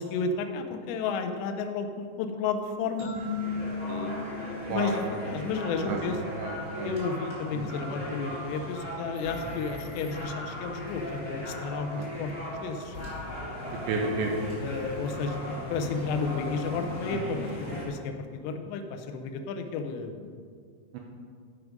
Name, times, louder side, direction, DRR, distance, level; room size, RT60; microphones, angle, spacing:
voice 1, 0.0-3.1 3.9-6.2 6.8-13.0 14.6-15.4 15.7-20.3, left 4 dB, 85° left, 6 dB, 2.5 m, -32 dB
sound 1, 3.0-5.6, left 4 dB, 55° right, 3.7 m, -36 dB
sound 2, 3.1-17.8, equal, 55° left, 0.8 m, -38 dB
voice 2, 4.7-5.0 5.9-6.0 6.4-6.9 7.5-7.7 12.0-12.1 13.7-14.3 17.1-17.6 20.9-21.0, right 4 dB, 80° right, 0 dB, 2.7 m, -32 dB
sound 3, 9.2-9.6 10.9-11.2 12.9-13.3 14.8-15.1, left 4 dB, 30° left, 2.1 m, -44 dB
11.5 x 6.1 x 5.3 m, 2.1 s
omnidirectional pair, 5.8 m